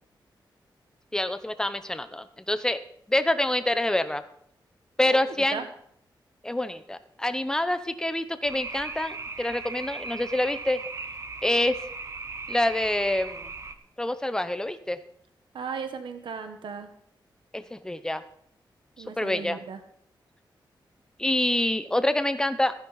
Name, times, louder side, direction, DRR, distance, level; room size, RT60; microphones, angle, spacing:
voice 1, 1.1-2.8 3.1-4.2 5.0-5.6 6.4-10.8 11.4-11.8 12.5-13.5 14.0-15.0 17.5-18.2 19.2-19.6 21.2-22.8, left 1 dB, 10° left, 11 dB, 0.8 m, -26 dB
sound 1, 8.4-13.7, right 4 dB, 40° right, 0.9 m, -38 dB
voice 2, 15.5-16.9 19.0-19.8, right 6 dB, 85° right, 8 dB, 1.1 m, -36 dB
14.5 x 10.5 x 4.0 m, 0.66 s
wide cardioid pair, 140°, 8 cm